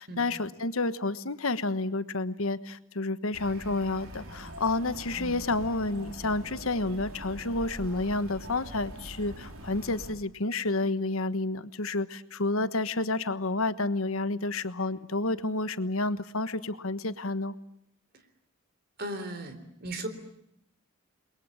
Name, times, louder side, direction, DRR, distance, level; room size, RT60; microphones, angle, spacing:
voice 1, 0.0-17.5, left 2 dB, 75° left, 13 dB, 1.3 m, -30 dB
sound 1, 3.3-10.1, right 1 dB, 75° right, 4.6 m, -44 dB
voice 2, 19.0-20.1, right 1 dB, 45° right, 9 dB, 3.9 m, -37 dB
29.5 x 22.0 x 8.4 m, 0.78 s
head